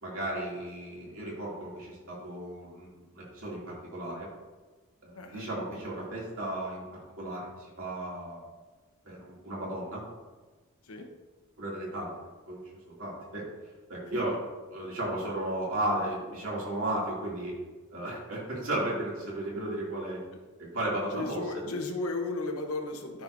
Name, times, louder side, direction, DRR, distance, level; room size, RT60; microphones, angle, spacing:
voice 1, 0.0-4.3 5.0-6.8 7.2-8.4 9.0-10.0 11.6-12.1 12.5-12.6 12.9-13.4 13.9-14.3 14.7-17.5 17.9-20.2 20.6-21.4, right 1 dB, 70° right, -5 dB, 2.5 m, -34 dB
voice 2, 5.1-5.5 10.8-11.1 14.0-14.2 21.1-23.2, left 2 dB, 85° left, 4 dB, 1.0 m, -35 dB
12.5 x 5.0 x 2.6 m, 1.3 s
head